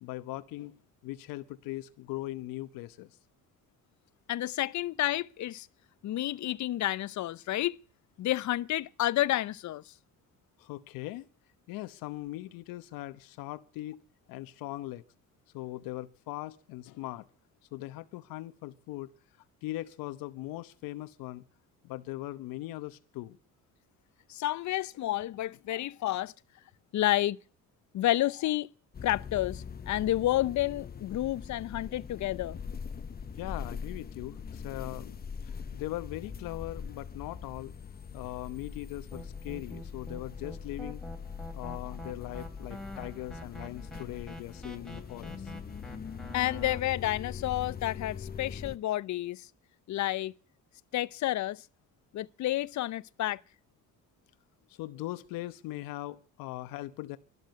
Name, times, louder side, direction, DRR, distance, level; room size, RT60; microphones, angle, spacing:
voice 1, 0.0-3.1 10.6-11.3 11.7-14.0 14.3-15.0 15.5-17.3 17.7-19.1 19.6-21.4 21.8-23.4 33.4-37.7 38.1-41.0 41.5-45.5 54.7-57.2, left 16 dB, 85° left, 1.0 m, -40 dB
voice 2, 4.3-5.7 6.0-7.8 8.2-9.8 24.3-26.3 26.9-27.4 27.9-28.7 29.0-32.6 46.3-49.5 49.9-50.3 50.9-51.6 52.1-53.4, left 14 dB, 55° left, 0.7 m, -30 dB
sound 1, 28.9-48.8, left 6 dB, 30° left, 0.9 m, -42 dB
sound 2, 39.1-46.8, right 1 dB, ahead, 2.8 m, -46 dB
12.5 x 12.0 x 9.4 m
cardioid pair, 105°, 34 cm